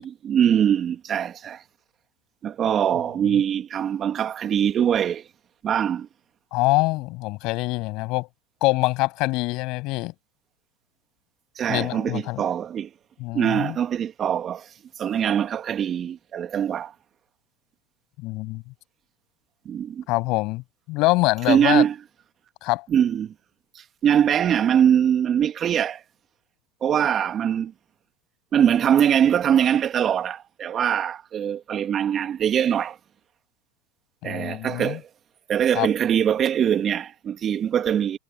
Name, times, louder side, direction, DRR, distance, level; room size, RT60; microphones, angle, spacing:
voice 1, 0.0-1.6 2.4-5.2 5.6-6.1 11.6-12.9 13.3-14.7 15.0-16.9 19.7-20.0 21.5-21.9 22.9-23.3 23.7-26.0 26.8-27.7 28.5-33.0 34.2-35.0 35.5-38.2, right 9 dB, 35° right, 2.5 m, -22 dB
voice 2, 6.5-8.3 8.6-10.1 11.7-12.4 13.2-13.8 18.2-18.6 20.1-20.6 20.9-21.8 22.6-22.9 34.2-35.0 35.8-35.9, left 22 dB, 55° left, 7.2 m, -24 dB
hypercardioid pair, 95°, 0 cm